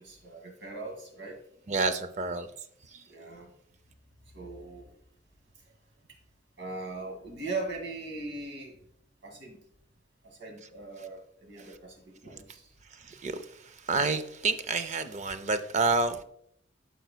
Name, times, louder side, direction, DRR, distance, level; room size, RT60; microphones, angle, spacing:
voice 1, 0.0-1.4 2.8-3.5 4.3-4.9 6.6-8.8 9.2-9.6 10.2-12.7, right 3 dB, 75° right, 1 dB, 1.9 m, -40 dB
voice 2, 1.7-2.5 13.1-16.2, right 3 dB, 40° right, 11 dB, 0.4 m, -29 dB
12.0 x 4.6 x 2.2 m, 0.70 s
head